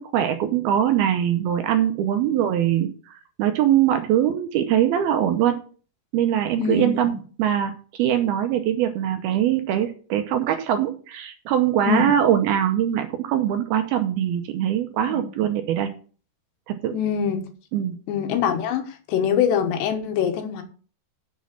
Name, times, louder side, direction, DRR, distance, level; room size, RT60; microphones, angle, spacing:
voice 1, 0.1-3.1 3.4-5.6 6.1-7.1 7.4-15.9 16.7-16.9 17.7-18.0, right 10 dB, 75° right, 7 dB, 2.5 m, -22 dB
voice 2, 6.6-7.1 11.9-12.1 15.1-15.2 16.9-17.5 18.1-20.6, left 8 dB, 75° left, 5 dB, 3.4 m, -24 dB
7.3 x 6.2 x 7.4 m, 0.40 s
omnidirectional pair, 5.0 m